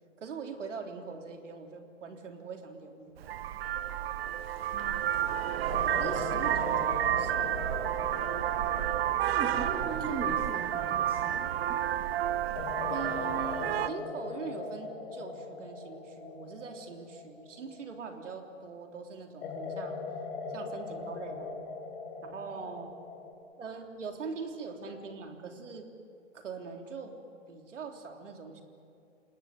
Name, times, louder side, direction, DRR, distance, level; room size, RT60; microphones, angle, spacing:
voice 1, 0.2-3.4 6.0-7.7 12.9-20.0 20.5-21.7 22.2-22.9 23.6-25.9 26.3-27.2 27.5-28.6, right 5 dB, 70° right, 3 dB, 3.6 m, -42 dB
Vehicle horn car horn honking, 3.2-13.9, right 11 dB, 50° right, 0.9 m, -30 dB
sound 1, 4.3-4.8 5.7-11.6 12.6-18.6 19.4-23.3, left 4 dB, 50° left, 3.4 m, -41 dB
voice 2, 4.7-5.1 9.3-12.0, right 3 dB, 15° right, 1 dB, 1.9 m, -39 dB
27.5 x 20.0 x 8.0 m, 2.5 s
figure-of-eight pair, 120°, 38 cm